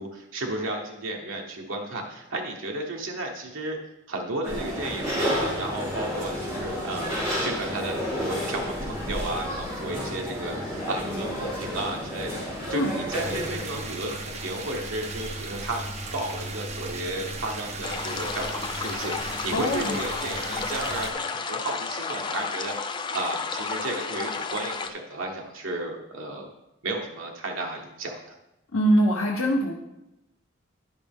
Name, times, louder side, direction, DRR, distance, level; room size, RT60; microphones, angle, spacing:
voice 1, 0.0-3.8 4.1-15.9 16.1-26.5 26.8-28.4, right 2 dB, 75° right, 0 dB, 1.0 m, -33 dB
sound 1, 4.4-13.6, equal, 15° right, 3.1 m, -31 dB
sound 2, 13.1-21.1, right 2 dB, 30° right, 0.8 m, -36 dB
sound 3, 17.8-24.9, left 5 dB, 20° left, 0.4 m, -32 dB
voice 2, 19.5-20.0 28.7-29.7, equal, 80° left, -3 dB, 1.0 m, -23 dB
11.0 x 5.3 x 3.6 m, 0.89 s
head